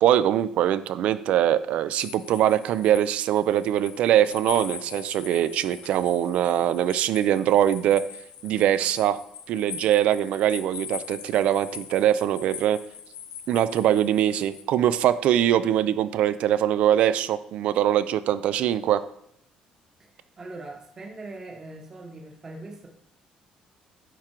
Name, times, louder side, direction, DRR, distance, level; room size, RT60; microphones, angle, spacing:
voice 1, 0.0-8.0 8.4-9.2 9.5-12.8 13.5-19.0, right 11 dB, 60° right, 14 dB, 0.4 m, -22 dB
sound 1, 2.0-14.6, left 8 dB, 70° left, 0.9 m, -42 dB
voice 2, 20.4-22.9, right 2 dB, 20° right, 1 dB, 0.9 m, -41 dB
9.2 x 3.7 x 4.4 m, 0.75 s
cardioid pair, 170°, 2 cm